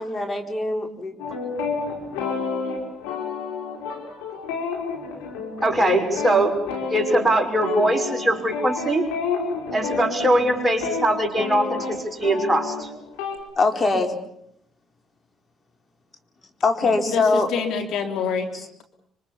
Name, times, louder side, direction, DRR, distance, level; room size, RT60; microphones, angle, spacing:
voice 1, 0.0-1.1 13.6-14.2 16.6-17.5, left 3 dB, 35° left, 5 dB, 4.3 m, -22 dB
sound 1, 1.2-13.4, left 4 dB, 85° left, 4.9 m, -30 dB
voice 2, 5.6-6.5 6.9-9.0 9.7-12.9, right 1 dB, 10° right, 2 dB, 6.3 m, -21 dB
voice 3, 16.8-18.5, left 5 dB, 70° left, 5 dB, 3.3 m, -27 dB
26.0 x 24.5 x 7.2 m, 0.72 s
hypercardioid pair, 60°, 0 cm